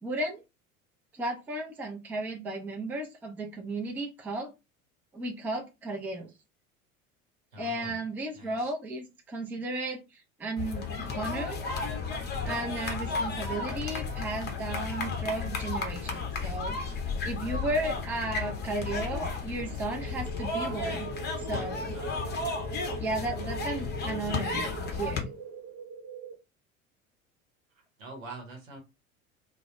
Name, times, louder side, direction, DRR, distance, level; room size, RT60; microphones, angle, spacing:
voice 1, 0.0-0.4 1.1-4.5 5.1-6.3 7.6-11.6 12.4-16.8 17.2-21.1 21.4-22.0 23.0-25.3, right 2 dB, 5° right, 2 dB, 0.4 m, -34 dB
voice 2, 7.5-7.9 8.3-8.6 13.1-13.2 21.9-22.5 28.0-28.8, right 2 dB, 75° right, 3 dB, 1.1 m, -44 dB
sound 1, 10.6-25.2, left 4 dB, 25° left, 0.7 m, -33 dB
sound 2, 19.9-26.3, right 4 dB, 45° right, 0.9 m, -41 dB
sound 3, 20.1-21.3, left 1 dB, 75° left, 0.8 m, -49 dB
2.3 x 2.0 x 2.9 m, 0.25 s
figure-of-eight pair, 75°, 40 cm